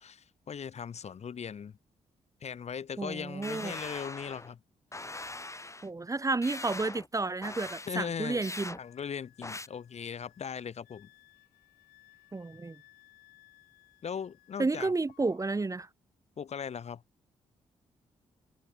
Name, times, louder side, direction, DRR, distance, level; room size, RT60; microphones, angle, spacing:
voice 1, 0.0-1.7 2.4-4.6 7.9-8.4 8.8-11.1 14.0-14.9 16.4-17.0, left 7 dB, 50° left, 0.7 m, -39 dB
voice 2, 3.0-3.8 5.8-8.8 12.3-12.8 14.6-15.9, right 3 dB, 25° right, 0.7 m, -31 dB
sound 1, 3.4-4.5 4.9-5.9 6.4-7.1 7.4-7.9 8.4-8.8 9.4-9.7, left 2 dB, 20° left, 2.1 m, -41 dB
Wind instrument woodwind instrument, 8.3-14.8 15.1-15.7, left 19 dB, 85° left, 3.7 m, -62 dB
hypercardioid pair, 45°, 14 cm